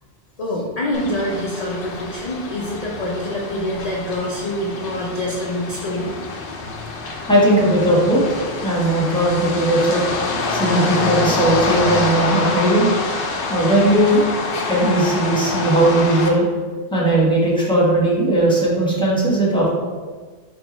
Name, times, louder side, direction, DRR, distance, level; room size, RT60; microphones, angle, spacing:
voice 1, 0.4-6.1, left 1 dB, 45° left, -3 dB, 0.5 m, -25 dB
sound 1, 0.9-16.3, left 3 dB, 80° left, 0.9 m, -26 dB
voice 2, 7.3-8.2 8.6-10.0 10.5-12.9 13.5-14.2 14.7-16.5 16.9-19.7, right 1 dB, 5° left, -6 dB, 1.0 m, -17 dB
4.8 x 2.6 x 4.0 m, 1.4 s
omnidirectional pair, 1.1 m